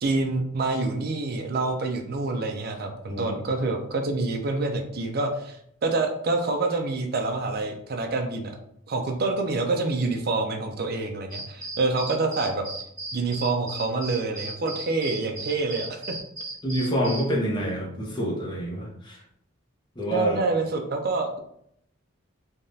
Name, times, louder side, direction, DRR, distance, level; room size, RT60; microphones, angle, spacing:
voice 1, 0.0-8.6 8.9-12.7 13.1-16.2 20.1-21.4, right 3 dB, 45° right, 4 dB, 0.4 m, -27 dB
sound 1, 11.3-17.3, right 2 dB, 20° right, 1.4 m, -36 dB
voice 2, 16.6-19.2 20.0-20.5, equal, 20° left, -3 dB, 0.7 m, -27 dB
3.4 x 2.3 x 2.7 m, 0.73 s
head